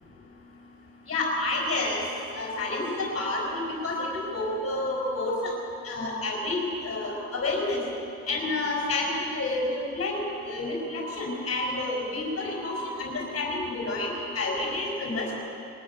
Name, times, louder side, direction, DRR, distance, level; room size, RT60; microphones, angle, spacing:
voice 1, 1.1-2.0 2.3-5.5 5.8-7.8 8.3-15.3, left 2 dB, 45° left, -2 dB, 5.4 m, -29 dB
22.0 x 18.0 x 6.8 m, 2.7 s
cardioid pair, 90°, 30 cm